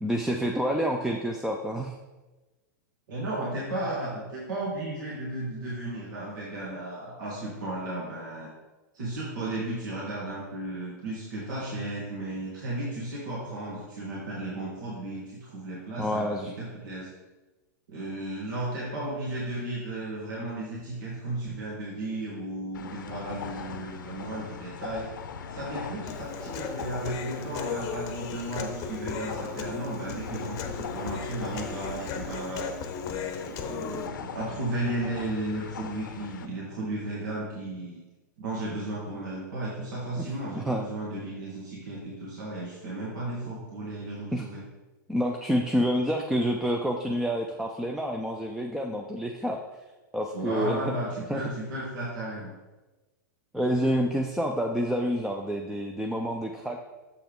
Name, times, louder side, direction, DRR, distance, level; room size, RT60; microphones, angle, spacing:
voice 1, 0.0-1.9 16.0-16.5 40.2-40.3 40.5-40.8 44.3-44.4 45.1-49.7 50.1-50.9 51.3-51.4 53.5-56.8, equal, 5° right, 1 dB, 0.4 m, -28 dB
voice 2, 3.1-8.5 8.9-17.1 17.9-25.1 25.5-32.7 33.6-38.0 38.4-44.6 50.3-52.5, right 1 dB, 75° right, -6 dB, 2.0 m, -34 dB
sound 1, 22.7-36.5, left 6 dB, 85° left, 0.6 m, -41 dB
Human voice, 26.1-34.1, left 6 dB, 35° left, 0.7 m, -36 dB
7.0 x 5.7 x 3.6 m, 1.1 s
hypercardioid pair, 130°, 10 cm